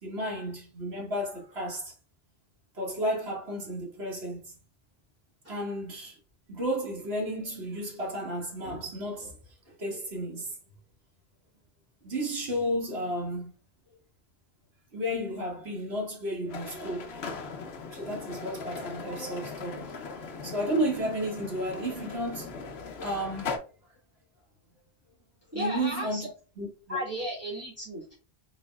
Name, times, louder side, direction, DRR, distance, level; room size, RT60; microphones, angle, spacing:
voice 1, 0.0-1.9 2.7-4.5 5.5-6.2 6.5-9.3 9.8-10.6 12.0-13.5 14.9-17.3 17.9-19.9 20.4-22.6 23.0-23.5 25.5-26.3 26.6-27.0, equal, 85° right, 1.9 m, -32 dB
sound 1, 16.5-23.6, left 4 dB, 85° left, 1.0 m, -39 dB
voice 2, 25.5-26.3 26.9-28.1, equal, 15° right, 2.4 m, -34 dB
4.1 x 3.8 x 2.4 m
omnidirectional pair, 1.0 m